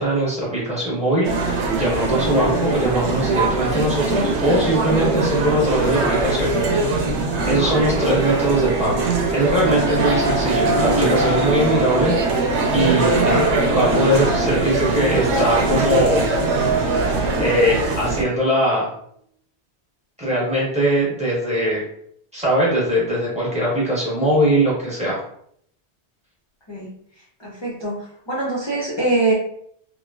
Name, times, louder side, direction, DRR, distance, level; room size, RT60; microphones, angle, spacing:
voice 1, 0.0-6.5 7.4-9.0 9.3-12.2 12.7-16.3 17.4-18.9 20.2-21.8 22.3-25.2, right 1 dB, 5° right, -7 dB, 1.0 m, -21 dB
sound 1, 1.2-18.2, right 3 dB, 85° right, 0.9 m, -21 dB
sound 2, 8.8-17.9, right 1 dB, 45° right, 0.7 m, -28 dB
voice 2, 27.4-29.3, right 2 dB, 35° left, -5 dB, 0.5 m, -23 dB
3.1 x 2.2 x 2.3 m, 0.68 s
omnidirectional pair, 1.1 m